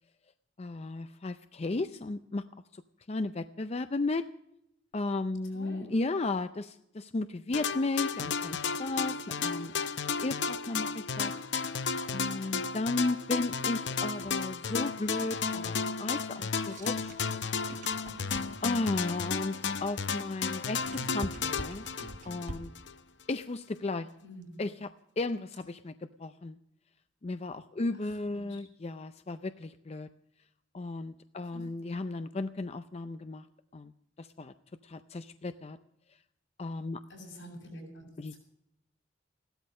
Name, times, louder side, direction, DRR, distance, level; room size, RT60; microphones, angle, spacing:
voice 1, 0.6-2.4 2.7-2.8 3.1-4.3 4.9-9.7 10.2-11.3 12.1-17.1 18.6-21.8 22.3-22.7 23.3-24.1 24.6-24.9 25.2-25.9 26.2-26.6 27.2-30.1 30.7-33.5 33.7-33.9 34.2-34.5 34.8-35.8 36.6-37.0 38.2-38.3, left 2 dB, 35° left, 10 dB, 0.5 m, -34 dB
voice 2, 5.5-5.9 12.2-12.5 18.2-18.6 24.2-24.6 27.9-28.6 31.5-31.6 37.1-38.0 38.3-38.4, equal, 85° left, -1 dB, 7.6 m, -48 dB
sound 1, 7.5-22.9, left 5 dB, 65° left, 0.7 m, -33 dB
sound 2, 16.3-18.8 20.4-22.9, right 1 dB, 40° right, 1.0 m, -44 dB
16.0 x 12.5 x 6.4 m, 0.77 s
head